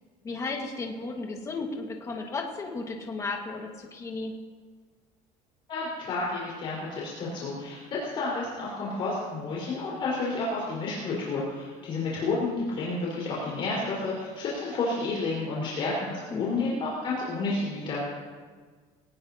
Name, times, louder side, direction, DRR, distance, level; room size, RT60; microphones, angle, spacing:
voice 1, 0.2-4.3 16.3-16.7, left 3 dB, 20° left, 1 dB, 1.8 m, -34 dB
voice 2, 5.7-18.0, left 3 dB, 35° left, -7 dB, 4.7 m, -30 dB
22.0 x 18.5 x 2.9 m, 1.5 s
cardioid pair, 165°, 14 cm